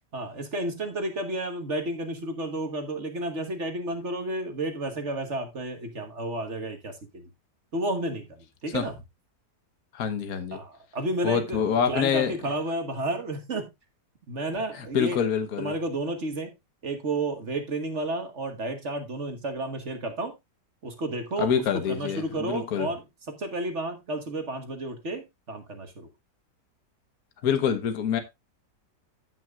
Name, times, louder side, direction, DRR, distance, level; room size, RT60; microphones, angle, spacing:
voice 1, 0.1-7.2 7.7-8.3 8.6-8.9 10.5-13.7 14.3-15.2 15.6-16.5 16.8-20.3 20.8-26.1, right 2 dB, 45° right, 1.6 m, -31 dB
voice 2, 9.9-10.6 11.2-12.3 14.7-15.7 21.4-22.9 27.4-28.2, left 7 dB, 60° left, 1.6 m, -26 dB
15.0 x 6.0 x 2.4 m
omnidirectional pair, 1.8 m